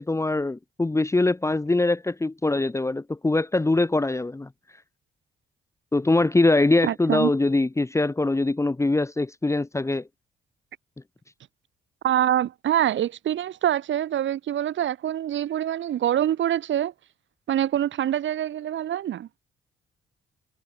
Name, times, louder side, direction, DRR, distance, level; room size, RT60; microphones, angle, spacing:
voice 1, 0.0-4.5 5.9-10.0, left 2 dB, 15° left, 1.5 m, -23 dB
voice 2, 6.8-7.3 12.0-16.9 17.5-19.3, right 11 dB, 70° right, 6.0 m, -25 dB
cardioid pair, 90°, 20 cm